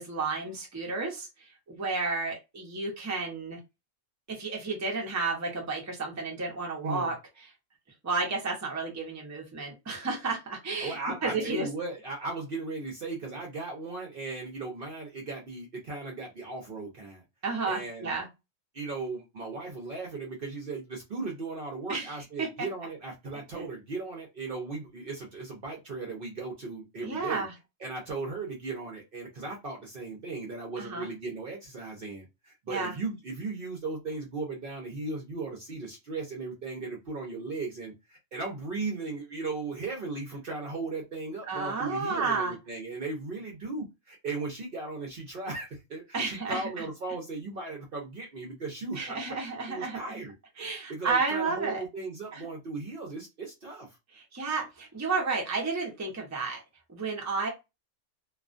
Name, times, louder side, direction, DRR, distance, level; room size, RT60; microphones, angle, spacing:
voice 1, 0.0-3.6 4.3-7.1 8.0-11.7 17.4-18.3 21.9-22.1 22.4-22.7 23.5-23.7 27.0-27.5 30.8-31.1 32.7-32.9 41.5-42.5 46.1-46.9 49.0-50.0 50.6-51.8 52.3-52.5 54.1-56.6 56.9-57.5, right 4 dB, 15° right, 0.6 m, -32 dB
voice 2, 10.8-17.2 17.7-18.1 18.7-27.4 27.8-49.2 49.7-50.3 50.9-54.0, right 3 dB, 55° right, 0.7 m, -37 dB
2.4 x 2.2 x 2.4 m
omnidirectional pair, 1.3 m